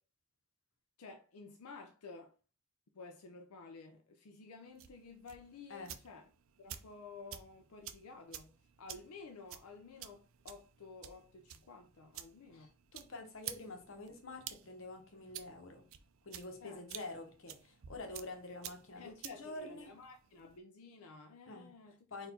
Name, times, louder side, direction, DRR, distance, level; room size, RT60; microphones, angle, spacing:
voice 1, 1.0-2.3 3.0-6.3 6.6-8.5 8.8-12.7 16.6-16.8 19.0-22.0, left 4 dB, 85° left, 0.5 m, -52 dB
sound 1, 4.7-20.6, right 11 dB, 65° right, 0.5 m, -52 dB
voice 2, 12.5-15.9 16.2-19.9 21.5-22.3, left 2 dB, 60° left, 1.0 m, -48 dB
4.3 x 2.6 x 4.2 m
head